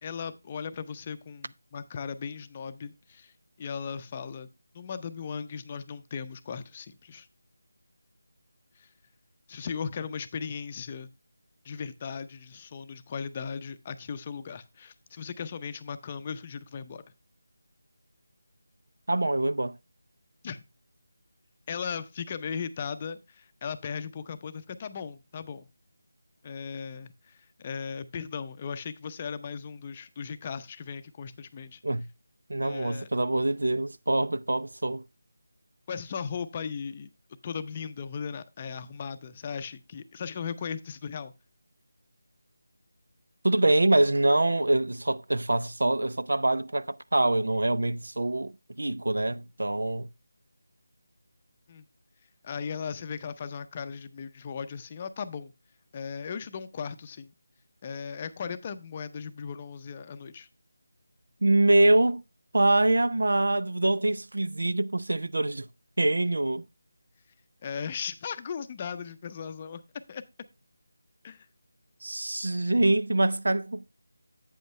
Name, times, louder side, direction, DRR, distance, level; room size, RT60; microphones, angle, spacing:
voice 1, 0.0-4.5 4.7-7.3 8.8-8.9 9.5-11.1 11.6-17.0 20.4-20.6 21.7-25.7 26.4-31.8 32.6-33.1 35.9-37.1 37.4-41.3 51.7-51.9 52.4-55.5 55.9-57.3 57.8-60.5 67.6-69.8 70.1-70.2 71.2-71.5, left 6 dB, 25° left, 0.6 m, -37 dB
voice 2, 19.1-19.8 31.8-32.1 32.5-35.0 43.4-50.1 61.4-62.2 62.5-65.7 66.0-66.6 72.0-73.9, right 2 dB, 80° right, 0.5 m, -25 dB
8.3 x 7.9 x 3.1 m
figure-of-eight pair, 165°, 0 cm